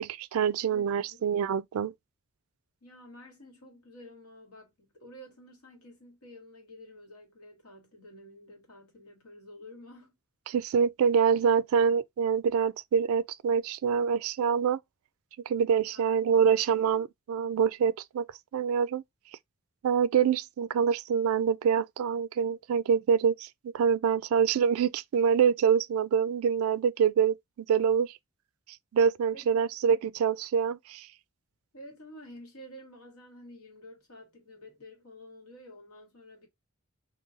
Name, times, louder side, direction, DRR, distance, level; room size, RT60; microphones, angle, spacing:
voice 1, 0.0-1.9 10.5-14.8 15.5-18.3 18.5-19.0 19.8-28.1 28.9-31.1, right 7 dB, 75° right, 0.3 m, -25 dB
voice 2, 0.7-1.2 2.8-10.1 15.9-16.1 29.3-29.7 31.7-36.5, left 1 dB, 80° left, 1.7 m, -50 dB
3.8 x 2.6 x 2.8 m
head